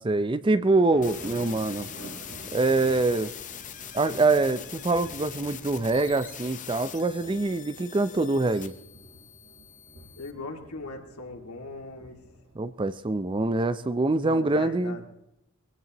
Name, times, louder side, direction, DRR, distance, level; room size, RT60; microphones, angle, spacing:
voice 1, 0.0-1.9 2.5-3.3 3.9-8.7 12.6-15.0, right 3 dB, 20° right, 13 dB, 0.4 m, -24 dB
sound 1, 0.9-13.6, right 1 dB, 85° right, 3.7 m, -49 dB
sound 2, 1.0-10.3, left 9 dB, 35° left, 0.8 m, -42 dB
voice 2, 10.2-12.2 14.2-15.1, left 2 dB, 85° left, 3 dB, 2.2 m, -39 dB
22.0 x 16.5 x 3.0 m, 0.83 s
head